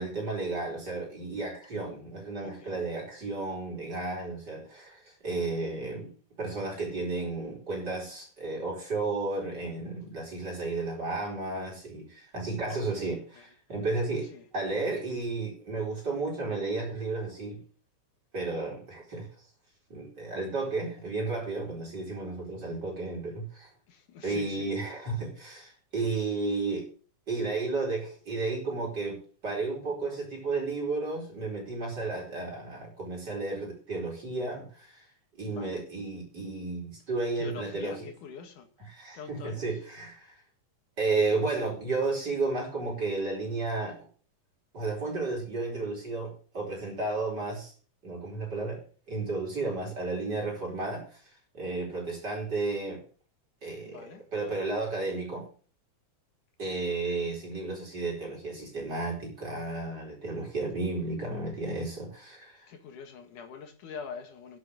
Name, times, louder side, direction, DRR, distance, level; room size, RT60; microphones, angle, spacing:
voice 1, 0.0-6.1 6.4-14.3 14.5-17.6 18.3-19.3 19.9-23.7 24.2-26.9 27.3-35.0 35.4-38.0 38.9-40.4 41.0-44.1 44.7-47.7 48.0-48.8 49.1-51.2 51.5-53.0 53.6-55.5 56.6-62.6, right 3 dB, 30° right, 4.8 m, -33 dB
voice 2, 2.4-2.9 12.7-13.5 14.3-14.5 23.9-24.7 35.5-35.8 37.4-38.7 39.1-39.6 53.8-54.2 56.6-57.0 62.7-64.6, left 6 dB, 75° left, 3.1 m, -44 dB
10.5 x 8.0 x 7.7 m
omnidirectional pair, 3.7 m